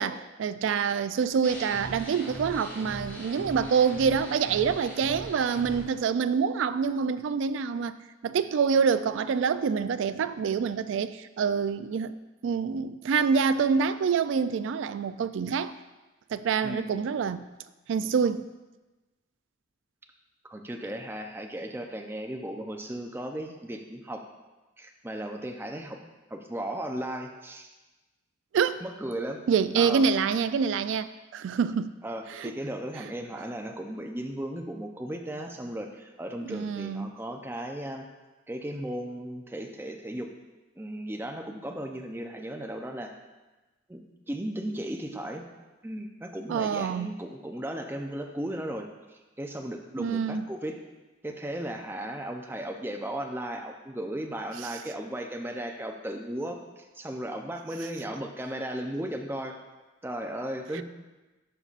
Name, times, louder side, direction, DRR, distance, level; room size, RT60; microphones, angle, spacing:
voice 1, 0.0-7.9 8.2-12.1 12.4-15.7 16.3-17.4 17.9-18.4 28.5-28.8 29.5-31.9 32.3-32.5 36.5-37.1 46.5-47.1 50.0-50.4 60.7-60.8, right 6 dB, 70° right, 13 dB, 0.3 m, -26 dB
sound 1, 1.4-5.8, equal, 10° left, 1.9 m, -40 dB
voice 2, 16.6-16.9 20.5-24.2 24.8-26.0 26.3-27.7 28.8-29.4 29.8-30.1 32.0-38.1 38.5-40.3 40.8-43.2 43.9-45.4 45.8-50.8 51.2-59.6 60.0-60.8, right 1 dB, 10° right, 3 dB, 0.5 m, -36 dB
11.0 x 5.4 x 2.5 m, 1.1 s
head